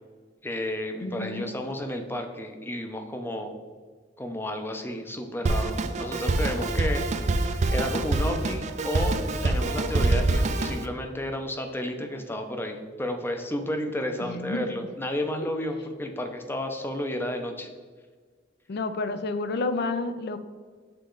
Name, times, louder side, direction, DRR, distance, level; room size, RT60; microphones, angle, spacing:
voice 1, 0.4-3.6 4.2-17.7, left 1 dB, 10° left, 5 dB, 0.6 m, -32 dB
voice 2, 1.0-1.5 14.2-14.7 18.7-20.4, left 3 dB, 60° left, 11 dB, 0.5 m, -30 dB
Drum kit, 5.5-10.9, right 2 dB, 40° right, 0.4 m, -25 dB
6.6 x 4.0 x 3.8 m, 1.5 s
head